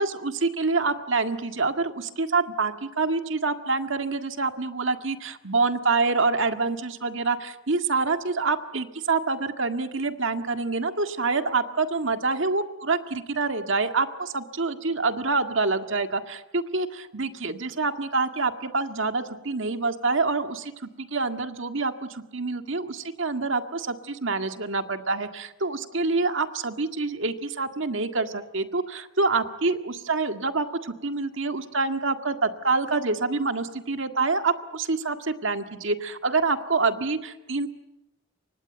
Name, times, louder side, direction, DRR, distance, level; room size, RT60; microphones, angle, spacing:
voice 1, 0.0-20.7 21.0-37.7, right 3 dB, 65° right, 7 dB, 1.9 m, -26 dB
28.5 x 24.5 x 8.0 m, 0.95 s
head